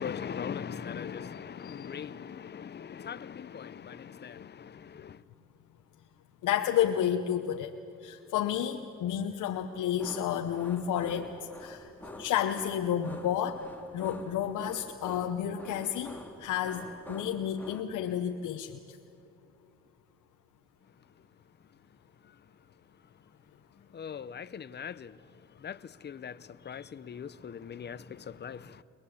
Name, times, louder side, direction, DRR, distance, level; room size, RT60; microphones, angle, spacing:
voice 1, 0.0-5.2 23.9-25.1 25.6-25.8 26.0-26.3 26.7-28.7, left 7 dB, 35° left, 0.7 m, -40 dB
voice 2, 6.4-7.7 8.0-11.3 11.6-11.9 12.2-13.6 13.9-19.0, left 10 dB, 85° left, 1.0 m, -31 dB
sound 1, 10.0-17.8, left 1 dB, 5° left, 2.4 m, -47 dB
22.5 x 20.5 x 8.5 m
cardioid pair, 90°, 30 cm